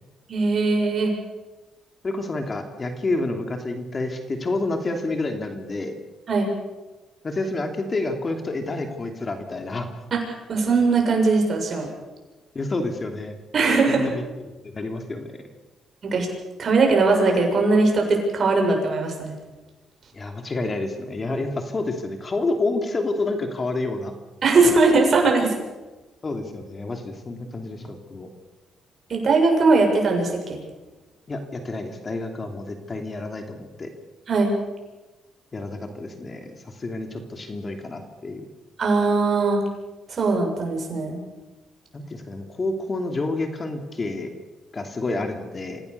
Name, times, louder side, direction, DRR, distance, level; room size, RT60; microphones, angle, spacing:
voice 1, 0.3-1.1 6.3-6.5 10.1-10.2 10.5-11.9 13.5-14.1 16.0-16.3 16.6-19.3 24.4-25.5 29.1-30.6 34.3-34.5 38.8-39.6 40.1-41.2, right 3 dB, 45° right, 2 dB, 7.0 m, -20 dB
voice 2, 2.0-5.9 7.2-9.9 12.5-13.4 13.9-14.2 14.6-15.3 20.1-24.1 26.2-28.3 31.3-33.9 35.5-38.5 41.9-44.3 44.7-45.8, left 2 dB, 35° left, 5 dB, 2.9 m, -29 dB
26.5 x 16.5 x 6.9 m, 1.2 s
cardioid pair, 90°, 0 cm